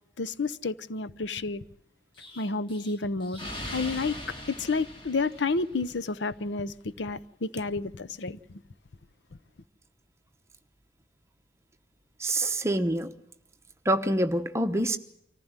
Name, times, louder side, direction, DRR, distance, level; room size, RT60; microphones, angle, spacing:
voice 1, 0.2-1.6 2.4-4.2 4.5-8.4, left 3 dB, 85° left, 0.7 m, -30 dB
Explosion, 2.2-6.0, left 1 dB, 30° left, 2.8 m, -41 dB
voice 2, 12.2-13.1 13.8-15.0, right 1 dB, 15° right, 1.0 m, -26 dB
25.5 x 15.0 x 8.9 m
head